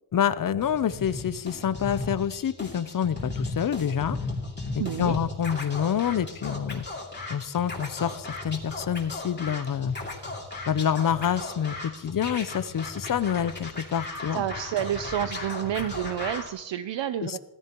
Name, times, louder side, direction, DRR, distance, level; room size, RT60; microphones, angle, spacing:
voice 1, 0.1-4.2 5.0-6.8 7.3-10.0 10.7-14.4 17.2-17.4, left 8 dB, 45° left, 15 dB, 0.6 m, -27 dB
Scratching (performance technique), 0.6-16.5, left 2 dB, 25° left, 2.6 m, -36 dB
voice 2, 4.8-5.2 14.3-17.4, right 11 dB, 70° right, 11 dB, 0.6 m, -29 dB
17.0 x 14.5 x 3.0 m, 1.1 s
wide cardioid pair, 125°, 45 cm